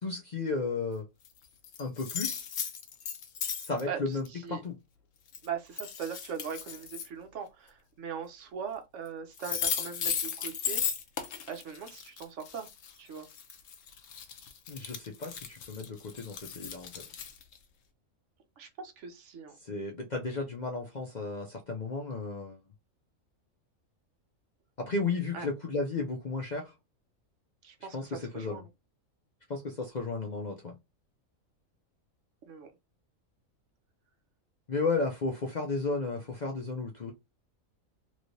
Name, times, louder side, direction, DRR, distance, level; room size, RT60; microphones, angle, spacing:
voice 1, 0.0-1.1 1.8-2.5 3.6-4.7 14.7-17.0 19.6-22.6 24.8-26.7 27.9-28.6 29.5-30.7 34.7-37.1, left 3 dB, 45° left, 0.6 m, -34 dB
sound 1, 1.2-1.3 1.6-3.8 4.2-4.3 5.3-5.5 5.8-7.1 9.1-9.2 9.4-17.6, left 7 dB, 70° left, 1.0 m, -36 dB
voice 2, 3.9-4.6 5.4-10.8 11.5-12.7 13.0-13.3 18.6-19.6 25.3-25.5 27.6-28.7 32.5-32.7, right 7 dB, 65° right, 1.0 m, -40 dB
3.2 x 3.1 x 2.6 m
omnidirectional pair, 1.4 m